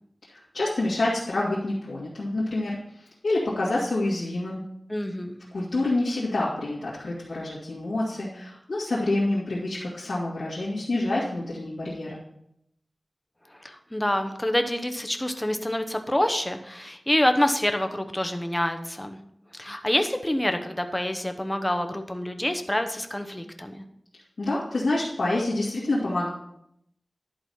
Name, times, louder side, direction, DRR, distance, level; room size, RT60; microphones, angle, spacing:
voice 1, 0.3-4.6 5.5-12.2 24.4-26.3, left 2 dB, 85° left, -9 dB, 2.1 m, -27 dB
voice 2, 4.9-5.4 13.5-19.2 19.5-23.8, left 1 dB, 15° left, 6 dB, 0.9 m, -27 dB
11.0 x 4.1 x 5.6 m, 0.75 s
wide cardioid pair, 65°, 0 cm